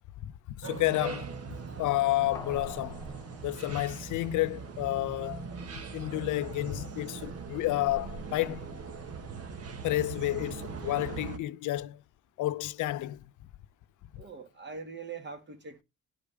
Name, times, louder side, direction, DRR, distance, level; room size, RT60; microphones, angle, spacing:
voice 1, 0.2-1.3 1.8-3.0 3.4-5.5 5.9-8.7 9.8-12.0 12.4-13.2, left 16 dB, 80° left, 0.5 m, -30 dB
sound 1, 0.6-11.4, right 5 dB, 55° right, 1.4 m, -41 dB
sound 2, 2.3-4.9 5.3-5.4, left 3 dB, 10° left, 0.6 m, -50 dB
voice 2, 14.2-15.8, right 5 dB, 35° right, 1.9 m, -42 dB
12.0 x 5.0 x 3.4 m
cardioid pair, 90°, 30 cm